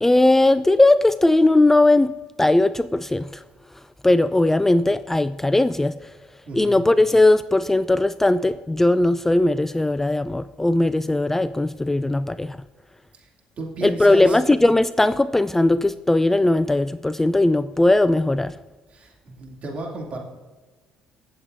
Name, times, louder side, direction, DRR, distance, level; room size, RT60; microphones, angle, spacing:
voice 1, 0.0-2.1 2.4-3.4 4.0-6.1 6.5-12.6 13.8-18.6, left 2 dB, 10° left, 14 dB, 0.3 m, -18 dB
voice 2, 13.6-14.4 18.9-20.2, right 2 dB, 50° right, -1 dB, 2.7 m, -34 dB
21.0 x 7.6 x 2.7 m, 1.2 s
supercardioid pair, 70°, 3 cm